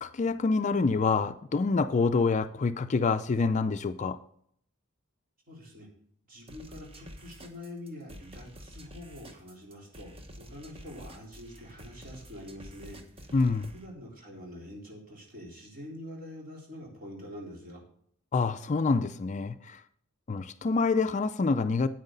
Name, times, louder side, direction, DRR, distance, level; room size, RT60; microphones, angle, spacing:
voice 1, 0.0-4.2 13.3-13.7 18.3-19.8 20.3-21.9, left 4 dB, 35° left, 0.4 m, -26 dB
voice 2, 5.5-5.9 6.3-13.4 13.7-17.8, left 1 dB, 45° right, 3.8 m, -45 dB
sound 1, 6.5-13.9, equal, 25° right, 1.2 m, -49 dB
9.5 x 8.9 x 3.9 m
head